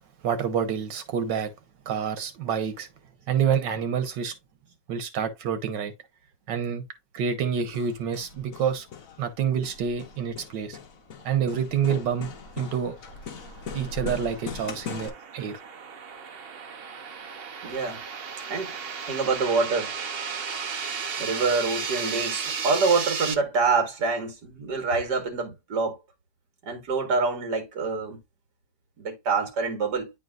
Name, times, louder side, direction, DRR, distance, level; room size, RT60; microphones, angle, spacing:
voice 1, 0.2-1.5 1.9-2.9 3.3-4.3 4.9-5.9 6.5-6.8 7.1-8.9 9.2-10.8 11.2-12.3 12.6-12.9 13.7-15.6, right 7 dB, 90° right, 1.7 m, -27 dB
Hammer, 7.5-15.1, left 4 dB, 55° left, 1.3 m, -40 dB
sound 1, 12.9-23.3, right 6 dB, 50° right, 0.7 m, -34 dB
voice 2, 17.6-18.0 18.5-18.7 19.1-19.9 21.2-26.0 26.6-28.2 29.0-30.1, right 4 dB, 70° right, 2.1 m, -26 dB
10.0 x 3.9 x 2.4 m
omnidirectional pair, 1.9 m